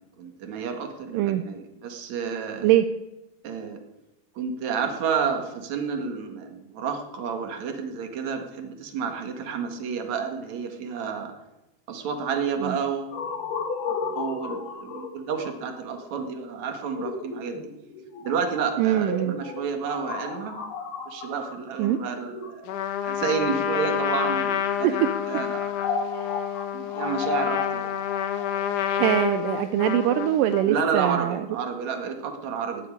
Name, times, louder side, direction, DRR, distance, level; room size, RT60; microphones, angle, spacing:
voice 1, 0.2-2.7 3.4-3.8 4.3-11.3 11.9-13.2 14.2-17.7 18.2-20.6 21.1-25.7 26.7-27.9 30.7-32.9, right 6 dB, 55° right, 4 dB, 2.8 m, -30 dB
sound 1, 13.1-23.0 23.7-30.7, left 5 dB, 90° left, 3.9 m, -35 dB
voice 2, 18.8-19.4 21.8-22.0 24.8-25.1 26.1-26.3 29.0-31.4, right 12 dB, 80° right, 9 dB, 2.1 m, -22 dB
Trumpet, 22.7-30.8, left 10 dB, 70° left, 2.2 m, -28 dB
16.0 x 8.5 x 9.9 m, 1.0 s
omnidirectional pair, 4.3 m